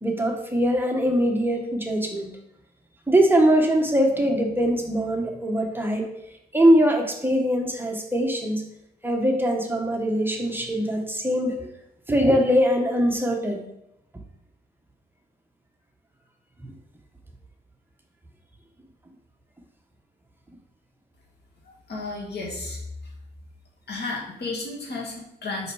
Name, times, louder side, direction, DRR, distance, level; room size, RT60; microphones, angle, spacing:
voice 1, 0.0-2.3 3.1-6.1 6.5-8.6 9.0-11.7 12.1-13.6 16.6-16.7, equal, 10° right, 2 dB, 0.9 m, -22 dB
voice 2, 21.6-23.1 23.9-25.7, left 3 dB, 75° left, -2 dB, 2.0 m, -33 dB
5.6 x 5.4 x 4.7 m, 0.83 s
wide cardioid pair, 130°, 17 cm